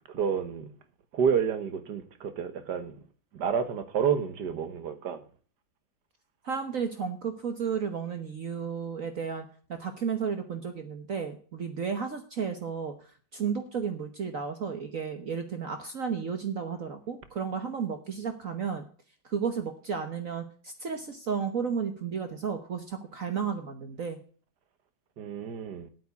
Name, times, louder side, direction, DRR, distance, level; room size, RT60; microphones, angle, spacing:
voice 1, 0.1-0.7 1.1-3.0 3.3-5.2 25.2-25.9, right 7 dB, 65° right, 1.8 m, -29 dB
voice 2, 6.4-12.9 13.3-18.8 19.2-24.2, right 6 dB, 50° right, 1.4 m, -33 dB
8.7 x 8.6 x 8.4 m
omnidirectional pair, 2.0 m